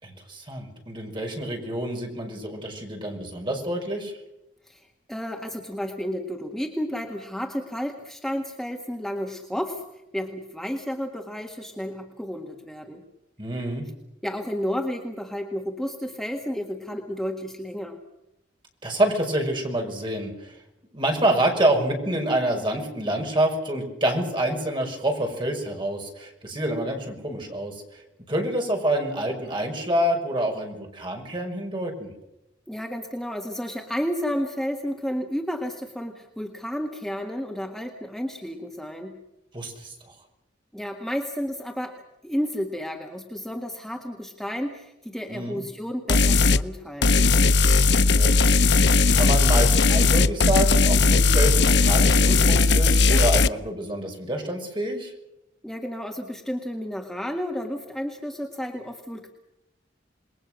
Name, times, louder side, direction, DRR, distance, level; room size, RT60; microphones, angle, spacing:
voice 1, 0.0-4.1 13.4-13.8 18.8-20.6 20.9-27.8 28.3-32.1 39.5-39.9 45.3-45.6 47.9-48.4 49.1-55.1, right 1 dB, 25° right, 2 dB, 6.0 m, -27 dB
voice 2, 4.6-9.8 10.1-13.0 14.2-18.0 32.7-39.2 40.7-41.9 42.2-47.3 55.6-59.3, equal, ahead, 2 dB, 1.7 m, -32 dB
sound 1, 46.1-46.6 47.0-53.5, left 3 dB, 65° left, 0.8 m, -18 dB
27.5 x 21.5 x 6.5 m, 0.89 s
head